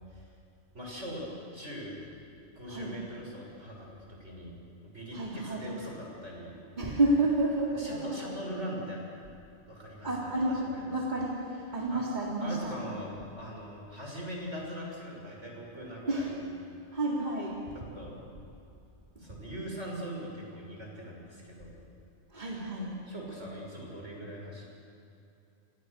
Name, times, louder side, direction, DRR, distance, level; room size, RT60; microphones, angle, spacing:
voice 1, 0.7-1.2 1.5-2.0 2.5-4.6 4.8-6.6 7.8-9.0 9.7-10.9 11.9-12.0 12.4-13.1 13.4-16.5 17.9-18.2 19.2-21.8 23.1-24.7, equal, 70° right, -1 dB, 6.9 m, -41 dB
voice 2, 5.1-5.6 6.8-8.3 10.0-11.4 11.7-12.8 16.1-16.3 16.9-17.6 19.2-19.4 22.3-22.9, right 2 dB, 40° right, -4 dB, 3.7 m, -30 dB
29.5 x 27.5 x 6.8 m, 2.7 s
omnidirectional pair, 1.2 m